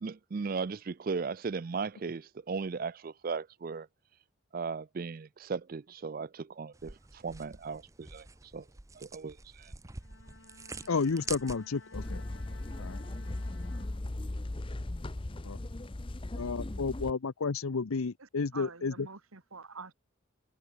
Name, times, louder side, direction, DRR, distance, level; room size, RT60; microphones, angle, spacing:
voice 1, 0.0-3.9 4.5-8.3 8.5-8.6 8.9-9.7, right 5 dB, 40° right, 0.4 m, -37 dB
sound 1, 6.7-12.0, right 4 dB, 15° right, 0.7 m, -46 dB
Bowed string instrument, 9.9-14.6, left 3 dB, 65° left, 7.2 m, -56 dB
voice 2, 10.9-12.2 12.8-13.0 15.4-15.6 16.4-19.1, left 4 dB, 85° left, 0.7 m, -32 dB
sound 2, 11.9-17.1, left 1 dB, 25° left, 0.6 m, -38 dB
voice 3, 18.2-19.9, right 4 dB, 80° right, 2.0 m, -47 dB
head